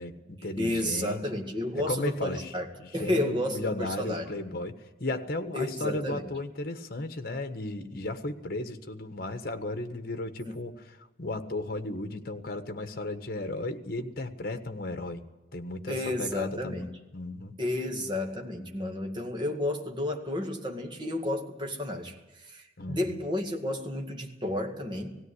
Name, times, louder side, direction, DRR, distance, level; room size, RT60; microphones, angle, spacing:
voice 1, 0.0-1.4 1.7-2.5 2.8-4.7 5.0-15.2 15.5-17.6 22.8-23.2, left 2 dB, 50° left, 8 dB, 1.4 m, -35 dB
voice 2, 0.6-2.7 2.9-4.3 5.5-6.3 10.4-10.6 15.9-16.9 17.6-25.2, left 1 dB, 25° right, 2 dB, 2.1 m, -32 dB
18.0 x 16.5 x 9.8 m, 1.0 s
head